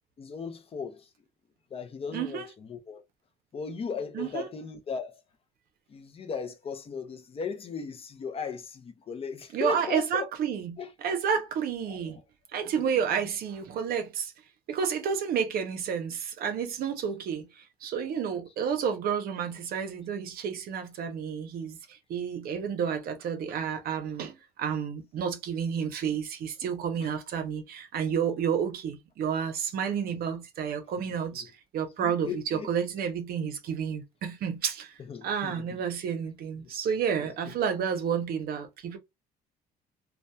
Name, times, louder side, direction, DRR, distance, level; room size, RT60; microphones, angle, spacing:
voice 1, 0.2-1.1 1.7-2.4 2.7-3.0 3.5-5.2 5.9-10.3 10.8-10.9 11.9-12.2 27.0-27.1 30.1-30.2 31.0-31.1 32.0-32.7 35.1-35.7 37.2-37.3, left 5 dB, 35° left, 0.5 m, -37 dB
voice 2, 2.1-2.5 4.1-4.5 9.5-12.2 12.5-14.3 14.7-34.9 35.2-39.0, right 7 dB, 60° right, 0.6 m, -30 dB
2.7 x 2.2 x 2.2 m
cardioid pair, 110°, 17 cm